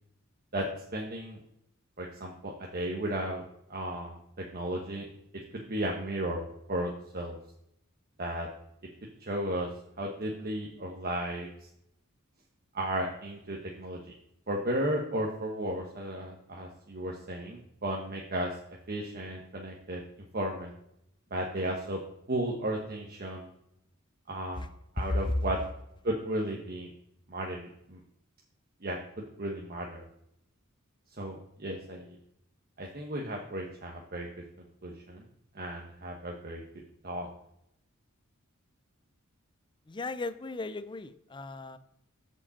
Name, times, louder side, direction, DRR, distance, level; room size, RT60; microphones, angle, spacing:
voice 1, 0.5-1.4 2.0-3.4 3.7-5.1 5.5-7.4 8.2-8.5 9.2-9.7 10.0-11.5 12.7-14.1 14.5-18.5 18.9-20.0 20.3-20.7 21.3-22.0 22.3-23.5 24.3-24.7 24.9-25.6 26.0-26.9 27.3-28.0 28.8-30.1 31.2-32.2 32.8-34.3 34.8-35.2 35.5-36.6 37.0-37.3, right 1 dB, 45° right, -1 dB, 1.1 m, -34 dB
voice 2, 25.0-25.4 39.9-41.8, left 2 dB, 20° left, 12 dB, 0.5 m, -34 dB
6.9 x 5.0 x 7.2 m, 0.79 s
head